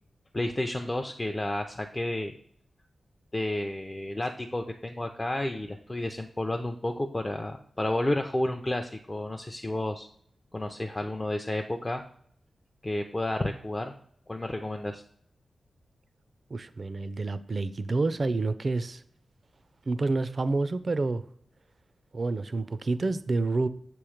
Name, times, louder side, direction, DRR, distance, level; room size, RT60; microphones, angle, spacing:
voice 1, 0.3-2.3 3.3-10.1 10.5-12.0 12.8-13.9 14.3-15.0, left 1 dB, 20° left, 4 dB, 0.4 m, -31 dB
voice 2, 16.5-19.0 19.9-21.2 22.1-23.7, right 3 dB, 45° right, 13 dB, 0.4 m, -28 dB
6.7 x 3.0 x 5.0 m, 0.65 s
wide cardioid pair, 85°, 0 cm